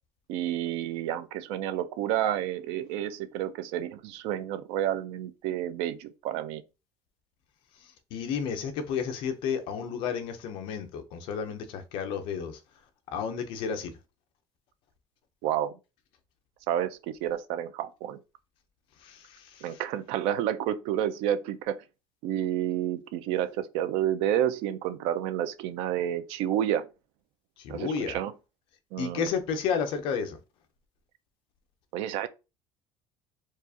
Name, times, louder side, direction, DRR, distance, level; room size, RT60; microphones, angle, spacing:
voice 1, 0.3-6.6 15.4-15.7 16.7-18.2 19.6-21.8 22.2-26.9 27.7-28.3 28.9-29.3 31.9-32.3, right 11 dB, 70° right, 0.5 m, -30 dB
voice 2, 8.1-12.6 13.1-13.9 19.0-19.7 27.6-28.2 29.0-30.4, left 6 dB, 55° left, 0.7 m, -32 dB
4.6 x 2.4 x 2.7 m
cardioid pair, 175°, 10 cm